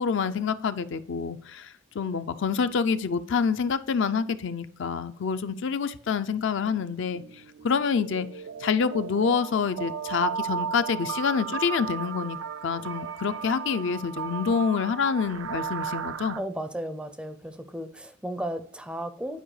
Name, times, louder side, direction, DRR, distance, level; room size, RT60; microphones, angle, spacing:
voice 1, 0.0-7.2 7.6-8.3 8.6-16.4, left 6 dB, 65° left, 11 dB, 0.4 m, -27 dB
sound 1, 6.7-6.8 7.2-16.4, right 7 dB, 75° right, 0.4 m, -35 dB
voice 2, 16.4-19.4, right 1 dB, 5° right, 10 dB, 0.4 m, -34 dB
10.0 x 4.7 x 3.2 m, 0.62 s
head